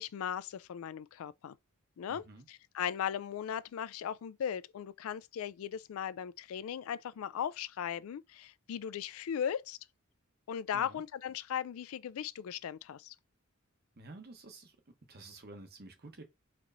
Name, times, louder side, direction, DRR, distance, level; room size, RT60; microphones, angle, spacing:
voice 1, 0.0-1.6 2.0-9.8 10.5-13.2, left 8 dB, 75° left, 0.3 m, -38 dB
voice 2, 2.1-2.4 10.7-11.0 14.0-14.8 15.1-16.2, right 2 dB, 50° right, 0.9 m, -50 dB
4.3 x 3.0 x 2.6 m
head